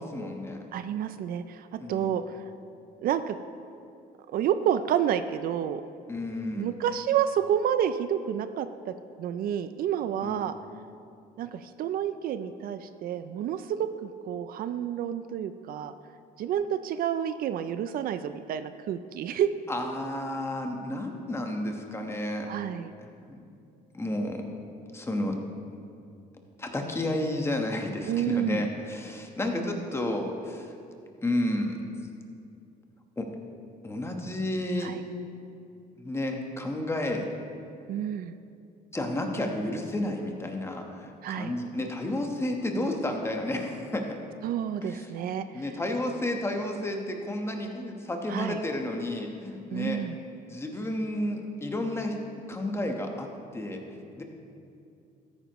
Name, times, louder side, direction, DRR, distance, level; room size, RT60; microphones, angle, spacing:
voice 1, 0.0-0.6 1.8-2.1 6.1-6.7 10.2-10.5 19.7-22.5 23.0-23.4 23.9-24.4 24.9-25.4 26.6-30.7 31.2-31.8 33.2-33.3 33.8-34.9 36.0-37.3 38.9-44.2 44.8-50.0 50.5-52.2 52.5-54.2, left 1 dB, 15° left, 3 dB, 1.2 m, -31 dB
voice 2, 0.7-2.4 3.0-3.4 4.3-5.8 6.6-8.9 9.2-10.5 11.4-15.9 16.4-19.5 22.5-22.9 28.1-28.6 29.5-29.8 34.8-35.0 37.9-38.4 41.2-41.5 44.4-45.5 48.3-48.6 49.7-50.2, right 9 dB, 60° right, 11 dB, 0.4 m, -29 dB
14.0 x 9.2 x 3.0 m, 2.5 s
cardioid pair, 110°, 17 cm